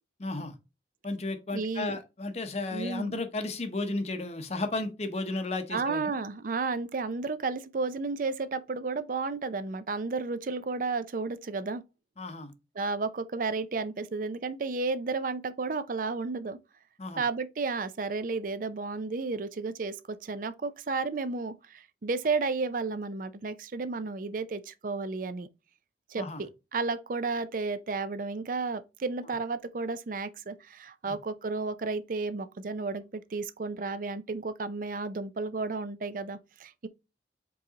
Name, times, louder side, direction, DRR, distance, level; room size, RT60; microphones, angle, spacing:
voice 1, 0.2-0.6 1.0-6.1 12.2-12.5 17.0-17.2 26.1-26.4 31.0-31.2, left 2 dB, 35° left, 0.8 m, -34 dB
voice 2, 1.5-2.0 2.7-3.1 5.7-11.8 12.8-16.6 17.2-25.5 26.1-36.9, right 4 dB, 50° right, 0.5 m, -32 dB
4.7 x 3.9 x 2.8 m
head